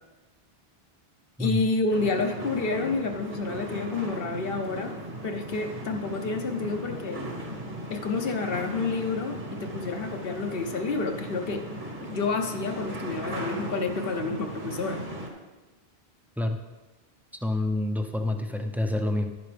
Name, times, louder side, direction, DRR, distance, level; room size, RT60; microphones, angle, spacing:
voice 1, 1.4-4.9 5.2-7.2 7.9-11.7 12.0-15.0, left 3 dB, 65° left, 4 dB, 1.1 m, -29 dB
sound 1, 1.9-15.3, right 1 dB, 50° right, 1.7 m, -37 dB
voice 2, 17.4-19.3, left 1 dB, ahead, 5 dB, 0.6 m, -27 dB
11.0 x 11.0 x 3.4 m, 1.2 s
omnidirectional pair, 1.0 m